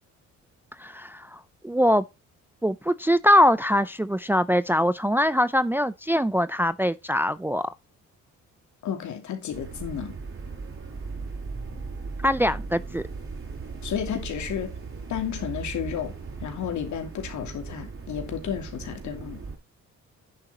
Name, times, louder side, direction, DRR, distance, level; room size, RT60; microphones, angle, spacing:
voice 1, 0.8-2.0 2.6-7.7 12.2-13.0, equal, 5° right, 0.4 m, -22 dB
voice 2, 8.8-10.2 13.8-14.7 15.1-16.1 16.4-19.4, left 8 dB, 70° left, 2.8 m, -32 dB
sound 1, 9.5-19.6, right 4 dB, 45° right, 4.9 m, -37 dB
10.0 x 6.5 x 4.2 m
cardioid pair, 90°, 30 cm